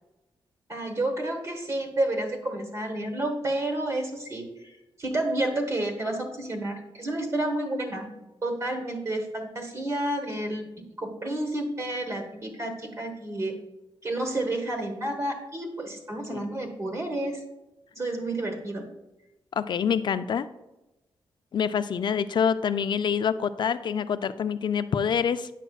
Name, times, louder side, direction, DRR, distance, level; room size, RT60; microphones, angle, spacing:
voice 1, 0.7-8.1 8.4-13.6 14.0-17.4 17.9-18.9, right 1 dB, 35° right, 3 dB, 1.1 m, -30 dB
voice 2, 19.5-20.5 21.5-25.5, left 7 dB, 60° left, 13 dB, 0.3 m, -26 dB
8.9 x 5.9 x 2.3 m, 0.98 s
wide cardioid pair, 100°, 9 cm